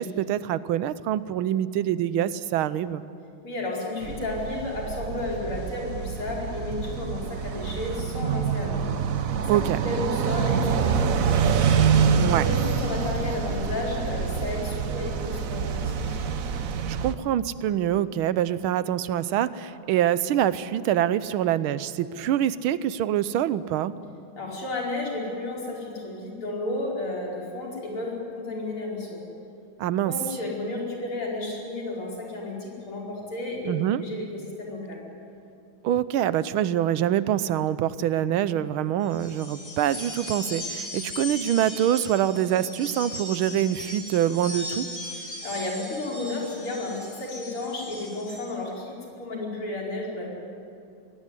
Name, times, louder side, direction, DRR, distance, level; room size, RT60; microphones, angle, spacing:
voice 1, 0.0-3.0 9.5-9.8 12.2-12.5 16.9-23.9 29.8-30.1 33.6-34.0 35.8-44.9, right 11 dB, 80° right, 15 dB, 1.5 m, -25 dB
voice 2, 3.4-8.8 9.3-9.4 9.8-11.6 12.4-16.2 24.4-29.2 30.0-35.0 45.2-50.3, left 2 dB, 85° left, -3 dB, 5.7 m, -32 dB
sound 1, 4.0-17.1, right 7 dB, 55° right, 1.1 m, -26 dB
Buzz, 10.7-16.9, left 3 dB, 70° left, 3.3 m, -42 dB
sound 2, 39.0-48.4, left 1 dB, 45° left, 5.7 m, -38 dB
22.0 x 18.0 x 9.8 m, 2.5 s
omnidirectional pair, 2.3 m